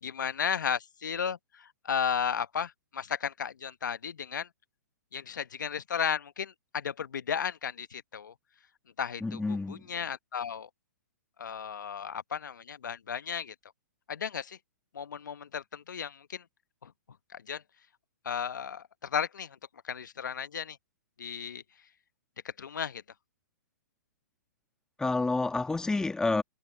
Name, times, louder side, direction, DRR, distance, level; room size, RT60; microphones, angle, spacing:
voice 1, 0.0-4.5 5.1-8.3 9.0-10.7 11.4-13.5 14.1-14.6 14.9-16.4 16.8-16.9 17.3-17.6 18.2-19.6 19.8-20.8 21.2-21.6 22.6-23.0, left 7 dB, 75° left, 1.3 m, -34 dB
voice 2, 9.2-9.8 25.0-26.4, left 3 dB, 5° left, 1.8 m, -29 dB
hypercardioid pair, 125°, 10 cm